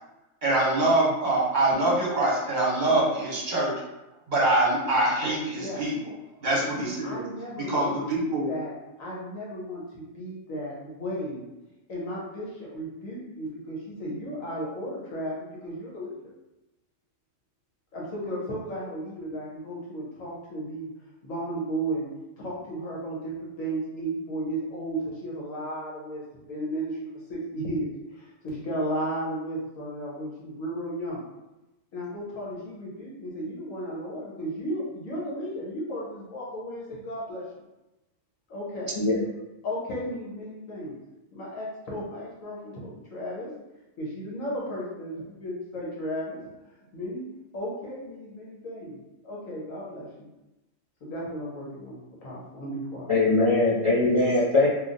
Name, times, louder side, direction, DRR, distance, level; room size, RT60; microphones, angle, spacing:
voice 1, 0.4-3.8 4.3-5.9 6.4-7.2 7.6-8.5, right 2 dB, 45° right, -5 dB, 0.8 m, -24 dB
voice 2, 6.8-11.4 11.9-16.3 17.9-20.9 21.2-22.1 22.4-26.2 26.5-27.0 27.3-31.2 31.9-37.4 38.5-39.0 39.6-40.9 41.3-43.5 44.0-46.4 46.9-47.3 47.5-50.3 51.0-53.1, right 1 dB, 80° left, -5 dB, 1.3 m, -34 dB
voice 3, 53.1-54.7, left 2 dB, 45° left, -7 dB, 0.4 m, -21 dB
3.1 x 2.4 x 2.6 m, 0.98 s
omnidirectional pair, 1.4 m